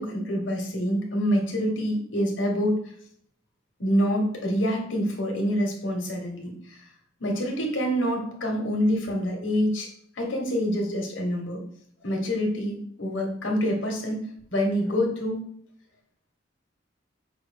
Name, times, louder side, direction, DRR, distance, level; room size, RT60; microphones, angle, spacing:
voice 1, 0.0-2.9 3.8-6.8 7.2-9.9 10.2-11.6 12.0-14.2 14.5-15.4, equal, 80° left, 1 dB, 1.1 m, -26 dB
5.5 x 2.4 x 3.4 m, 0.63 s
head